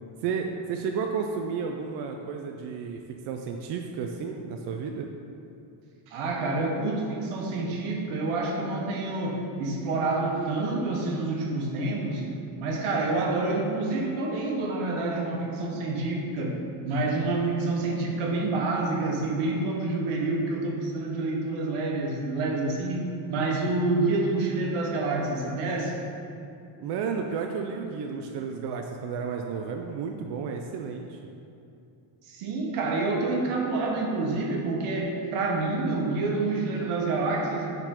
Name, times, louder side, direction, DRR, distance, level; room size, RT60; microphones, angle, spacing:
voice 1, 0.2-5.1 26.8-31.2, right 5 dB, 55° right, 3 dB, 0.5 m, -32 dB
voice 2, 6.1-12.2 12.6-16.5 16.8-23.0 23.3-26.0 32.2-37.7, right 2 dB, 75° right, 0 dB, 1.2 m, -28 dB
6.7 x 3.9 x 4.3 m, 2.6 s
cardioid pair, 155°, 50 cm